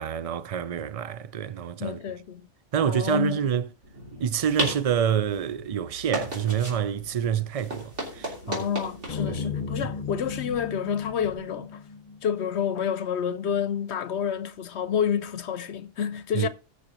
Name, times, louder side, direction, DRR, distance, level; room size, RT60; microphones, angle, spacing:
voice 1, 0.0-2.0 2.7-3.7 4.2-8.7 9.3-9.4 16.3-16.5, right 8 dB, 50° right, 0.4 m, -27 dB
voice 2, 1.8-2.5 2.8-3.4 8.5-11.8 12.2-16.5, left 8 dB, 70° left, 0.9 m, -29 dB
sound 1, 3.8-11.4, right 1 dB, 75° right, 3.5 m, -36 dB
sound 2, 9.1-13.4, left 6 dB, 40° left, 0.8 m, -36 dB
19.0 x 6.5 x 3.0 m
omnidirectional pair, 1.2 m